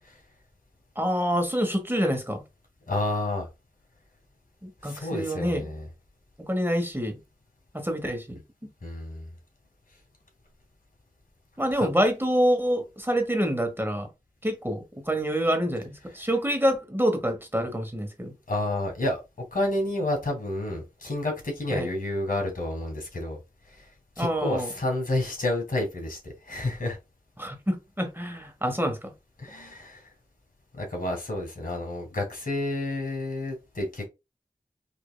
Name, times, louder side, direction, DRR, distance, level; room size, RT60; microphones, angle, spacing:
voice 1, 1.0-2.4 4.6-5.7 6.5-7.2 7.7-8.4 11.6-14.1 14.4-18.3 21.7-21.9 24.2-24.7 27.4-29.1, equal, 15° right, 1.2 m, -26 dB
voice 2, 2.9-3.5 4.8-5.9 8.8-9.3 11.8-11.9 18.5-19.2 19.5-23.4 23.7-23.9 24.2-27.0 29.4-30.1 30.7-34.1, left 1 dB, 70° left, 1.8 m, -30 dB
5.1 x 2.8 x 2.3 m
wide cardioid pair, 45°, 15 cm